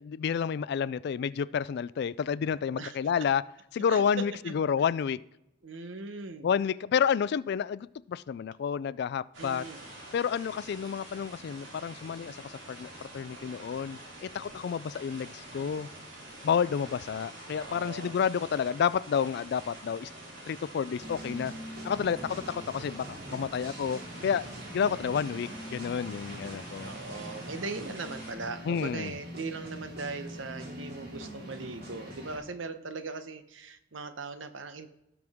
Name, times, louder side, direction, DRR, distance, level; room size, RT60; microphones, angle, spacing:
voice 1, 0.0-3.4 3.7-5.2 6.4-9.7 10.1-15.9 16.4-20.1 20.5-21.5 21.8-26.9 28.7-29.1, left 7 dB, 60° left, 0.3 m, -30 dB
voice 2, 3.9-4.5 5.6-6.5 9.4-9.8 17.5-18.2 22.0-22.4 24.9-25.2 26.8-34.9, right 3 dB, 90° right, 1.0 m, -40 dB
sound 1, 9.3-28.3, right 1 dB, 75° right, 3.7 m, -47 dB
sound 2, 21.0-32.4, equal, 55° right, 2.7 m, -43 dB
17.5 x 6.1 x 3.6 m
head